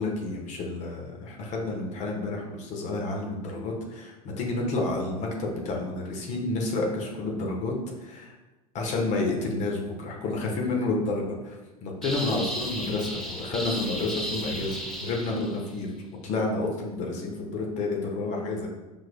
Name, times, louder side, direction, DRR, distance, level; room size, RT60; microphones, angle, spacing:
voice 1, 0.0-8.3 8.7-15.9 16.2-18.7, left 2 dB, 40° left, 0 dB, 1.1 m, -30 dB
sound 1, 12.0-15.7, equal, ahead, 0.7 m, -34 dB
5.5 x 3.5 x 2.2 m, 1.1 s
figure-of-eight pair, 80°, 19 cm